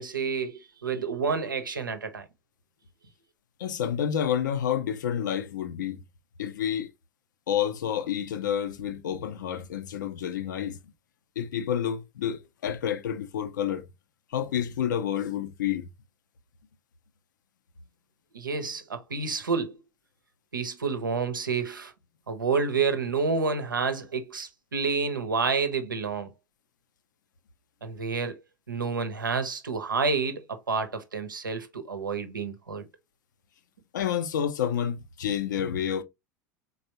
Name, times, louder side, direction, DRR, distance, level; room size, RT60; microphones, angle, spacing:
voice 1, 0.0-2.3 18.3-19.8 20.5-21.9 22.3-26.3 27.8-28.4 28.7-32.9, right 5 dB, 80° right, 0.8 m, -29 dB
voice 2, 3.6-6.0 6.4-6.9 7.5-10.8 11.4-13.8 14.3-15.9 33.9-36.0, left 9 dB, 70° left, 0.6 m, -29 dB
4.0 x 3.3 x 2.8 m
figure-of-eight pair, 80°, 11 cm